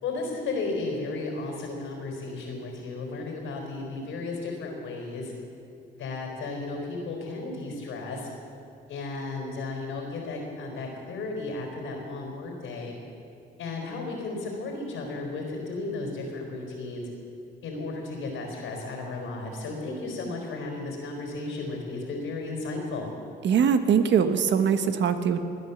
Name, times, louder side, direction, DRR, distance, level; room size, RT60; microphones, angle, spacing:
voice 1, 0.0-5.3 5.9-8.3 8.9-13.0 13.6-17.1 17.6-23.1, left 3 dB, 90° left, 0 dB, 4.1 m, -34 dB
voice 2, 23.4-25.4, right 7 dB, 65° right, 8 dB, 1.2 m, -22 dB
20.0 x 10.0 x 7.1 m, 2.5 s
cardioid pair, 90°, 20 cm